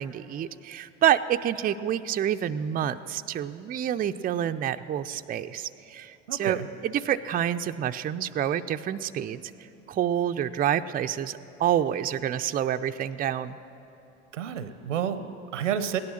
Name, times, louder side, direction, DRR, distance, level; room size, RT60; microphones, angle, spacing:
voice 1, 0.0-9.4 9.9-13.6, right 10 dB, 25° right, 9 dB, 0.4 m, -28 dB
voice 2, 6.3-6.7 14.3-16.0, right 9 dB, 90° right, 13 dB, 0.8 m, -30 dB
17.0 x 11.5 x 6.4 m, 3.0 s
hypercardioid pair, 70°, 36 cm